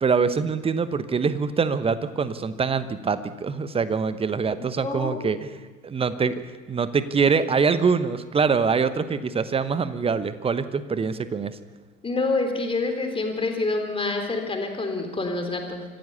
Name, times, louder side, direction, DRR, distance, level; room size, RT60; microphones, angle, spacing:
voice 1, 0.0-5.5 5.8-11.6, right 5 dB, 15° right, 14 dB, 1.0 m, -24 dB
voice 2, 4.8-5.3 12.0-15.9, left 3 dB, 10° left, 4 dB, 3.7 m, -27 dB
25.5 x 15.5 x 7.0 m, 1.3 s
figure-of-eight pair, 85°, 42 cm